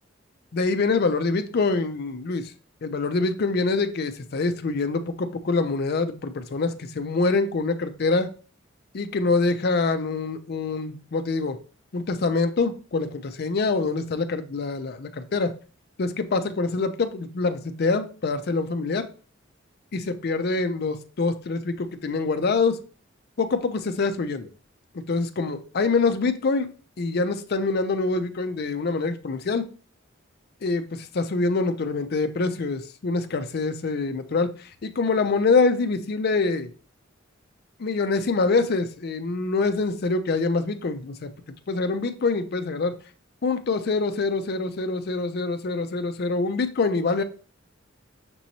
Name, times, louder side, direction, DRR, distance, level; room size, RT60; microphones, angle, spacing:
voice 1, 0.5-2.4 2.8-8.3 8.9-11.6 11.9-15.5 16.0-19.1 19.9-22.8 23.4-24.5 24.9-26.7 27.0-29.7 30.6-34.5 34.8-36.7 37.8-41.3 41.7-42.9 43.4-47.2, left 3 dB, 50° left, 8 dB, 0.5 m, -25 dB
6.0 x 3.0 x 2.7 m, 0.38 s
head